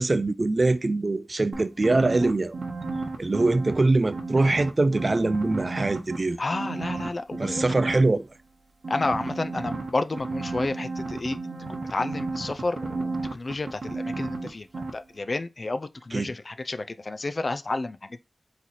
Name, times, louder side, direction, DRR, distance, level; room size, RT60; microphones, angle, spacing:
voice 1, 0.0-2.5 3.2-6.4 7.4-8.3 16.1-16.3, right 2 dB, 40° right, 0.4 m, -23 dB
sound 1, 1.5-3.8 4.1-6.2 6.5-8.0 8.8-14.5 14.7-14.9, right 3 dB, 65° right, 0.9 m, -32 dB
voice 2, 6.4-7.7 8.9-11.4 11.9-18.2, left 2 dB, 45° left, 0.3 m, -31 dB
3.9 x 3.1 x 4.1 m
wide cardioid pair, 90°, 0 cm